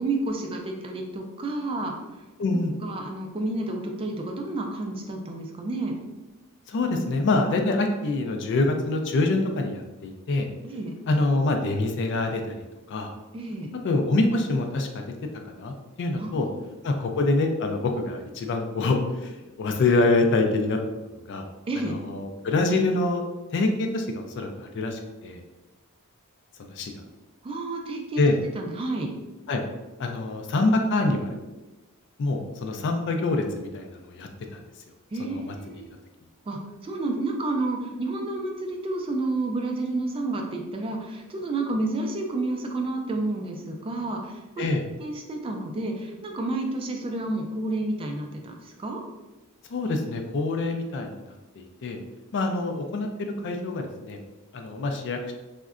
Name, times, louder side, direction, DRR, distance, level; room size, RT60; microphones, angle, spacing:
voice 1, 0.0-1.9 2.8-5.9 10.6-10.9 13.3-13.7 16.2-16.6 21.7-22.0 27.4-28.3 28.5-29.1 35.1-35.8 36.5-44.6 45.0-49.0, right 2 dB, 25° right, 2 dB, 0.3 m, -30 dB
voice 2, 2.4-2.7 6.7-10.5 11.1-12.6 12.9-13.1 13.8-15.0 15.4-16.5 16.8-20.8 21.3-21.4 21.8-23.2 23.5-25.4 26.6-26.9 28.2-28.4 29.5-29.6 30.0-31.4 32.2-34.6 35.2-35.9 44.6-44.8 49.7-51.2 51.6-52.0 52.3-54.2 54.5-55.3, left 2 dB, 55° left, 4 dB, 0.4 m, -25 dB
3.6 x 2.1 x 2.4 m, 1.1 s
head